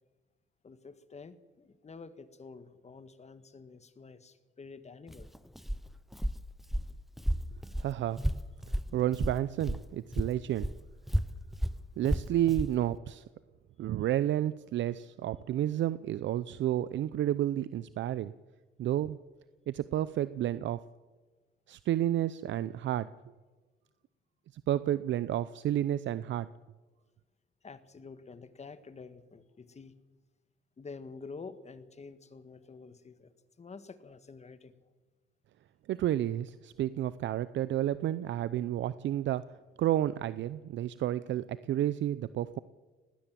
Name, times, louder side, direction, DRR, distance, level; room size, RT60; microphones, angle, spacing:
voice 1, 0.6-5.3 27.6-29.9 30.8-34.7, left 4 dB, 35° left, 12 dB, 1.7 m, -48 dB
Walk footsteps, 5.1-9.9 10.1-12.8, equal, ahead, 0.8 m, -33 dB
voice 2, 7.8-8.3 8.9-10.7 12.0-13.2 13.8-18.3 18.8-19.2 19.7-20.8 21.7-23.1 24.7-26.5 35.9-39.5 39.8-42.6, right 12 dB, 70° right, 16 dB, 0.6 m, -31 dB
20.0 x 19.0 x 7.6 m, 1.3 s
cardioid pair, 90°, 20 cm